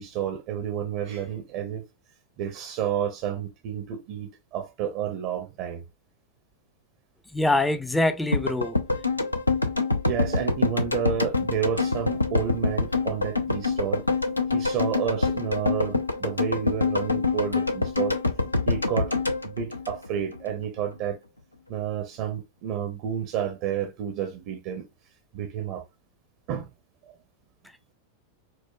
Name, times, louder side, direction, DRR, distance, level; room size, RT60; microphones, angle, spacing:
voice 1, 0.0-1.8 2.4-5.8 10.1-14.0 14.5-18.2 18.7-19.1 19.4-21.2 21.7-24.9 25.3-25.8 26.5-26.7, right 9 dB, 45° right, 0.5 m, -30 dB
voice 2, 7.3-8.8, left 2 dB, 5° left, 0.4 m, -24 dB
sound 1, 8.3-20.5 20.8-20.9, left 3 dB, 85° left, 0.4 m, -26 dB
4.7 x 2.1 x 2.3 m
figure-of-eight pair, 90°, 0 cm